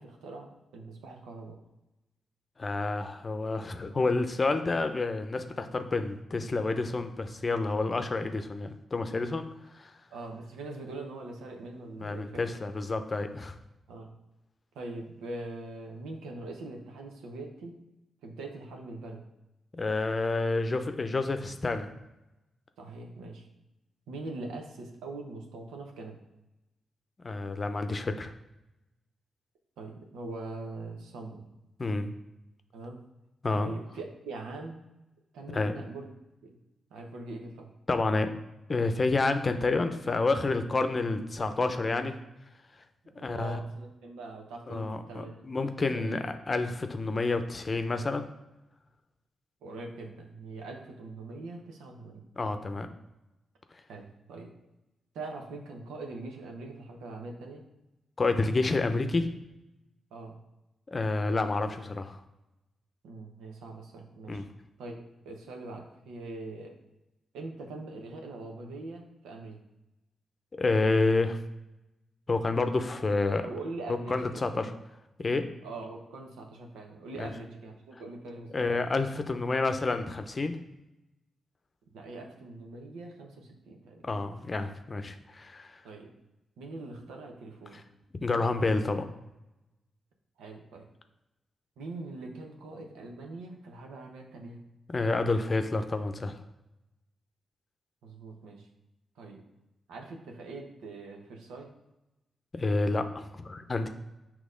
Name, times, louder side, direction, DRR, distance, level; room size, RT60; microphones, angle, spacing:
voice 1, 0.0-1.6 10.1-12.6 13.9-14.1 14.7-17.7 18.2-19.2 22.8-23.5 24.1-26.2 29.8-31.4 32.7-33.0 33.6-34.8 35.3-36.1 36.4-36.6 36.9-37.7 43.1-46.2 49.6-52.2 53.9-54.5 55.1-57.6 60.1-60.4 63.0-64.4 64.8-66.7 67.3-69.6 73.4-74.7 75.6-78.7 81.9-84.0 85.8-86.1 86.6-87.9 90.4-90.8 91.8-94.6 98.0-98.7 99.2-99.4 99.9-101.7, right 2 dB, 85° right, 2 dB, 0.9 m, -42 dB
voice 2, 2.6-9.5 9.8-9.9 12.0-13.6 19.7-21.9 27.2-28.3 31.8-32.1 33.4-33.7 35.5-35.7 37.9-38.3 38.7-42.2 43.2-43.6 44.7-48.2 52.4-52.9 58.2-59.3 60.9-62.2 64.3-64.5 70.6-71.4 72.3-73.4 73.9-74.7 75.2-75.5 77.2-77.3 78.5-80.6 84.0-85.8 88.1-89.0 94.9-96.3 102.5-103.9, left 3 dB, 40° left, 8 dB, 0.6 m, -29 dB
6.2 x 3.0 x 5.1 m, 0.95 s
supercardioid pair, 45°, 0 cm